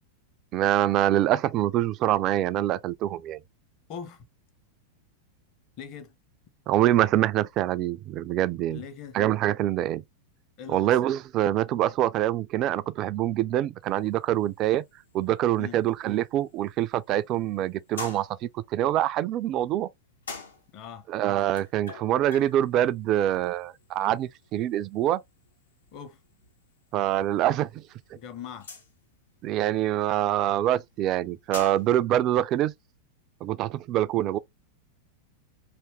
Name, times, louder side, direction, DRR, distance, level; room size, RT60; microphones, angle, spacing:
voice 1, 0.5-3.4 6.7-8.8 9.1-10.0 10.7-14.8 15.1-18.3 18.5-19.9 21.1-25.2 26.9-27.8 29.4-32.7 33.4-34.4, right 12 dB, 35° right, 0.3 m, -25 dB
voice 2, 3.9-4.2 5.8-6.1 8.7-9.2 10.6-11.0 15.6-15.8 20.7-21.1 25.9-26.2 28.1-28.7, left 7 dB, 40° left, 0.8 m, -41 dB
sound 1, 13.8-32.1, left 4 dB, 70° left, 0.8 m, -48 dB
3.4 x 2.8 x 3.0 m
figure-of-eight pair, 90°, 0 cm